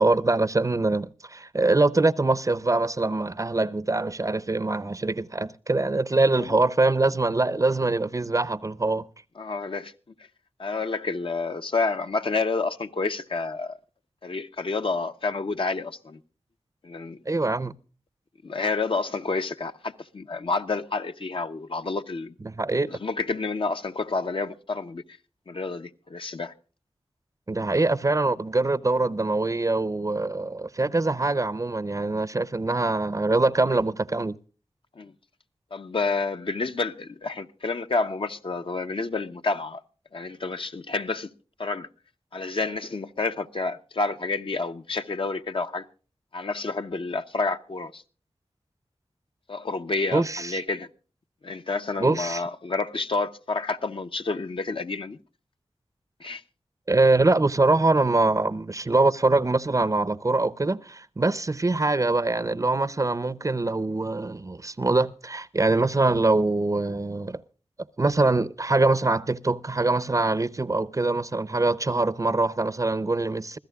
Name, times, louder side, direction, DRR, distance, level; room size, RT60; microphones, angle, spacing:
voice 1, 0.0-9.1 17.3-17.7 22.5-22.9 27.5-34.4 50.1-50.6 52.0-52.4 56.9-67.4 68.0-73.6, right 2 dB, 30° right, 0.6 m, -23 dB
voice 2, 9.4-9.9 10.6-13.8 14.2-16.2 16.8-17.2 18.4-22.3 22.9-25.0 25.5-26.5 35.0-35.1 35.7-39.8 40.1-41.3 41.6-41.9 42.3-45.9 46.3-48.0 49.5-50.9 51.4-55.2 56.2-56.4, left 3 dB, 55° left, 0.8 m, -29 dB
26.0 x 16.0 x 2.3 m
wide cardioid pair, 85°, 11 cm